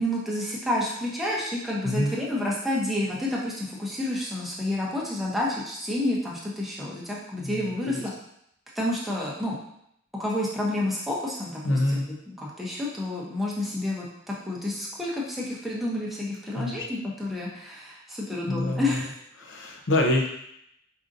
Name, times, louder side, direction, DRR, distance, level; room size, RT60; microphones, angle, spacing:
voice 1, 0.0-8.1 8.8-9.6 10.2-19.1, left 1 dB, ahead, -5 dB, 0.7 m, -29 dB
voice 2, 7.4-8.0 11.6-12.1 16.5-16.9 18.5-19.0 19.4-20.3, left 1 dB, 75° left, 1 dB, 0.6 m, -26 dB
4.9 x 2.6 x 2.5 m, 0.75 s
head